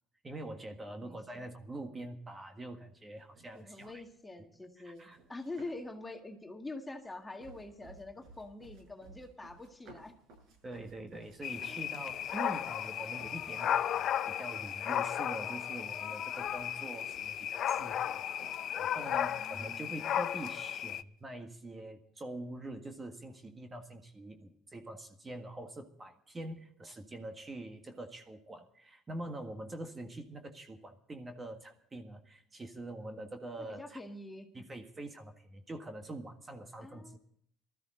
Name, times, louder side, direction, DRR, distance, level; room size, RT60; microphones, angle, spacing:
voice 1, 0.2-4.0 4.8-5.2 10.6-18.2 18.8-34.0 34.5-37.2, right 1 dB, 20° right, 5 dB, 1.6 m, -44 dB
voice 2, 1.0-1.5 3.5-10.2 11.7-11.8 19.3-20.1 33.6-34.5 36.8-37.2, left 2 dB, 10° left, 4 dB, 1.8 m, -45 dB
sound 1, 3.2-4.1 4.9-6.0 6.7-13.9 14.5-14.6 14.8-15.6 15.9-19.8, right 3 dB, 70° right, 7.6 m, -58 dB
sound 2, 11.4-21.0, left 10 dB, 50° left, 0.6 m, -35 dB
19.5 x 13.5 x 3.8 m, 0.67 s
cardioid pair, 110°, 0 cm